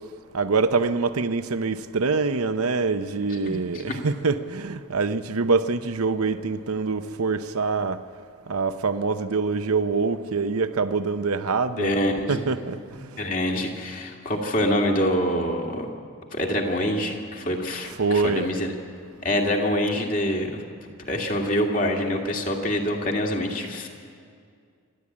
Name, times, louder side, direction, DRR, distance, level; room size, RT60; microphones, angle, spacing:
voice 1, 0.3-8.0 8.5-12.0 12.3-13.2 18.0-18.4, right 4 dB, 80° right, 0.8 m, -25 dB
voice 2, 3.4-4.0 11.8-12.4 13.2-15.9 16.3-18.7 19.2-20.6 21.0-23.9, equal, 35° left, 2.2 m, -25 dB
26.5 x 12.5 x 8.6 m
head